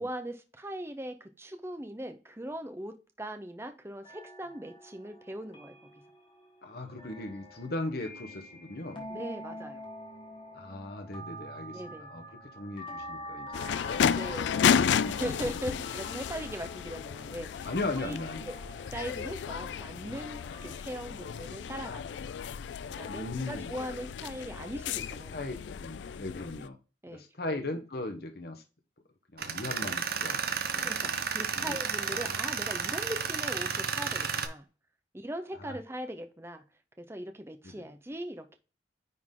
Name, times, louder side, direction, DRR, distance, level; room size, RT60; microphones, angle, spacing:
voice 1, 0.0-5.8 9.1-9.8 11.7-12.1 14.1-17.7 18.0-18.2 18.5-18.6 18.9-22.2 23.0-25.3 25.7-25.8 27.0-27.2 27.5-27.6 30.8-34.7 35.1-36.6 37.0-38.6, right 1 dB, 15° right, 0.7 m, -40 dB
sound 1, 4.0-20.8, equal, 30° left, 1.8 m, -47 dB
voice 2, 6.6-9.1 10.5-12.2 12.6-13.7 17.6-18.5 23.0-23.7 25.3-26.8 27.1-28.6 29.3-30.4 30.7-31.2 31.5-31.8 32.0-32.4 35.5-35.8 37.6-37.9, left 2 dB, 55° left, 1.1 m, -38 dB
sound 2, 13.5-26.7, left 7 dB, 80° left, 0.3 m, -32 dB
Tools, 29.4-34.5, right 6 dB, 55° right, 0.9 m, -32 dB
9.6 x 4.0 x 3.8 m
head